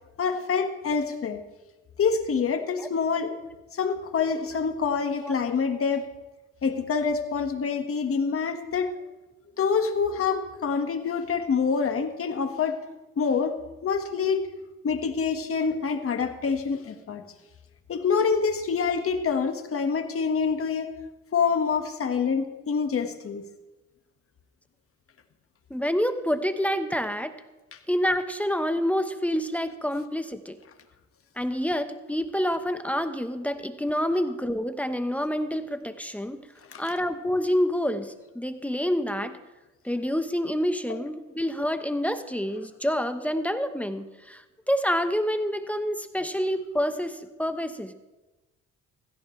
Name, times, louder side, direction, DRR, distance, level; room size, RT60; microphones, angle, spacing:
voice 1, 0.2-1.4 2.0-3.3 3.7-6.1 6.6-9.0 9.6-12.8 13.2-13.6 13.8-14.5 14.8-17.2 17.9-20.9 21.3-23.5 36.7-36.8, left 5 dB, 50° left, 6 dB, 1.6 m, -26 dB
voice 2, 25.7-27.3 27.9-30.6 31.4-36.4 36.8-39.4 39.8-47.9, equal, 5° left, 9 dB, 1.0 m, -27 dB
16.0 x 15.0 x 3.3 m, 1.1 s
cardioid pair, 90°, 30 cm